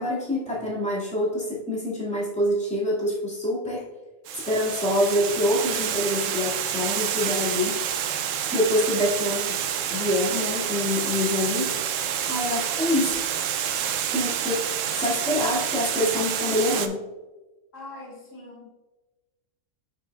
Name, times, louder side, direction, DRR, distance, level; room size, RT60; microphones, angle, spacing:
voice 1, 0.0-3.9 4.5-7.8 8.5-9.6 9.9-13.2 14.1-14.6 15.0-17.0, left 1 dB, 5° left, -7 dB, 2.0 m, -26 dB
Water, 4.3-16.9, right 9 dB, 85° right, 0.9 m, -28 dB
voice 2, 17.7-18.7, left 2 dB, 85° left, -3 dB, 1.9 m, -42 dB
6.5 x 6.4 x 2.3 m, 1.1 s
omnidirectional pair, 1.3 m